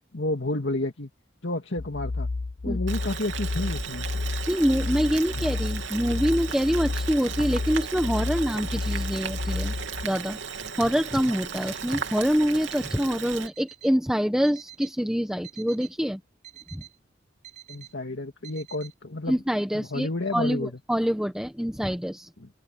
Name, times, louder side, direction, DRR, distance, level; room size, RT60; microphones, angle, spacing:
voice 1, 0.1-1.1 1.4-2.3 2.6-4.1 17.7-19.4 19.7-20.8 22.4-22.5, left 2 dB, 70° left, 2.1 m, -30 dB
sound 1, 1.8-10.1, left 3 dB, 40° left, 0.5 m, -31 dB
Boiling, 2.9-13.5, right 6 dB, 80° right, 2.9 m, -36 dB
voice 2, 4.5-9.7 10.0-16.2 16.7-16.8 19.3-22.3, equal, 5° right, 1.0 m, -26 dB
Alarm, 13.4-14.0 14.4-15.0 15.4-16.0 16.4-17.0 17.4-17.9 18.4-18.9, right 14 dB, 40° right, 5.4 m, -47 dB
open air
head